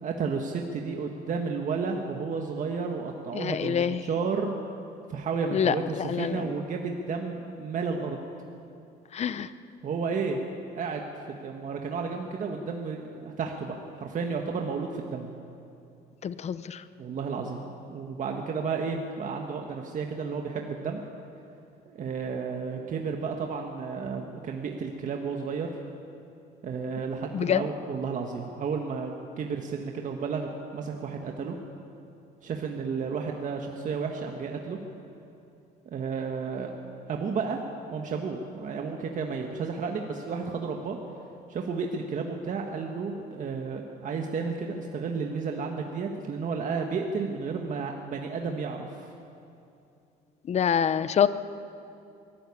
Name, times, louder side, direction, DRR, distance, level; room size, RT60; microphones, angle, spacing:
voice 1, 0.0-4.5 5.1-8.2 9.8-10.4 10.7-15.3 17.0-21.0 21.9-25.7 26.6-31.6 32.4-34.8 35.9-36.7 37.1-37.6 37.9-41.0 41.5-49.1, right 5 dB, 50° right, 2 dB, 1.7 m, -32 dB
voice 2, 3.3-4.0 5.5-6.5 9.1-9.5 16.2-16.8 27.3-27.7 50.5-51.3, left 8 dB, 40° left, 14 dB, 0.8 m, -26 dB
23.0 x 14.0 x 8.6 m, 2.7 s
cardioid pair, 110°, 17 cm